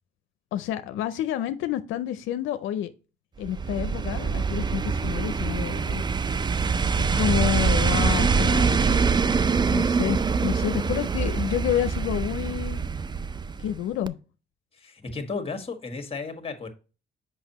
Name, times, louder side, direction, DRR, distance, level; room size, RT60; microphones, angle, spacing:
voice 1, 0.5-2.9 3.4-6.0 7.1-8.8 9.7-12.8 13.6-14.2, left 11 dB, 90° left, 0.5 m, -29 dB
sound 1, 3.4-13.8 14.1-14.2, right 5 dB, 20° right, 0.4 m, -24 dB
voice 2, 14.7-16.7, left 4 dB, 30° left, 1.5 m, -34 dB
6.4 x 5.4 x 2.9 m
cardioid pair, 90°, 20 cm